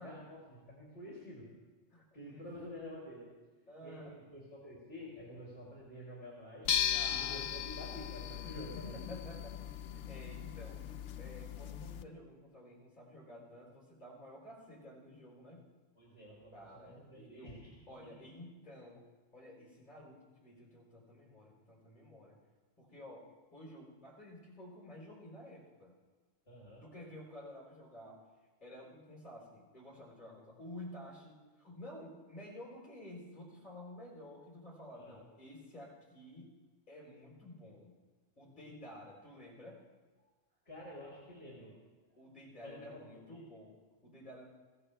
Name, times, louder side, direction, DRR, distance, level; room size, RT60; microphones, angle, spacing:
voice 1, 0.0-1.5 2.1-3.3 3.8-6.7 7.1-9.2 16.0-17.8 26.5-26.8 34.9-35.2 40.7-41.8 42.6-43.0 43.3-43.4, left 1 dB, 60° left, -6 dB, 3.6 m, -49 dB
voice 2, 1.9-2.5 3.7-4.2 6.9-7.4 8.8-10.8 11.2-15.6 16.5-19.0 19.3-22.4 22.8-25.9 26.8-28.2 28.6-36.5 36.9-37.9 38.4-39.8 42.2-44.5, left 1 dB, 40° left, -3 dB, 4.4 m, -52 dB
sound 1, 6.6-12.0, left 9 dB, 80° left, 1.0 m, -37 dB
21.0 x 16.0 x 3.4 m, 1.3 s
omnidirectional pair, 1.2 m